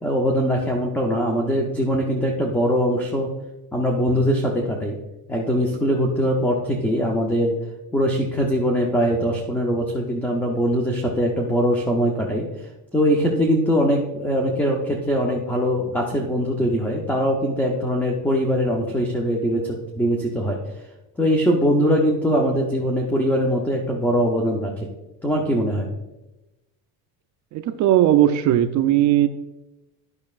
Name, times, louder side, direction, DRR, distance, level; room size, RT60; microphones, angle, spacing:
voice 1, 0.0-3.3 3.7-5.0 5.3-7.5 7.9-12.5 12.9-20.6 21.2-24.9 25.2-25.9, equal, 5° left, 0 dB, 0.6 m, -22 dB
voice 2, 27.5-29.3, right 12 dB, 50° right, 9 dB, 0.4 m, -18 dB
10.5 x 6.1 x 2.4 m, 1.0 s
cardioid pair, 160°, 39 cm